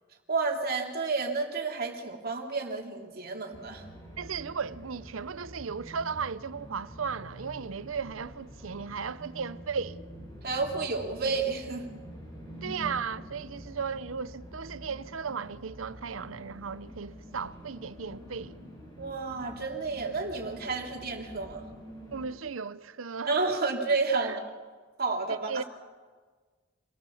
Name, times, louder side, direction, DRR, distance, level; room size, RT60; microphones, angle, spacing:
voice 1, 0.3-3.8 10.4-11.9 19.0-21.6 23.3-24.4 25.0-25.6, right 4 dB, 50° right, 3.1 m, -30 dB
sound 1, 3.5-22.3, equal, 25° left, 6.8 m, -47 dB
voice 2, 4.2-10.0 12.6-18.6 22.1-23.3 24.2-24.4 25.5-25.6, right 5 dB, 80° right, 0.7 m, -36 dB
26.5 x 18.0 x 7.1 m
head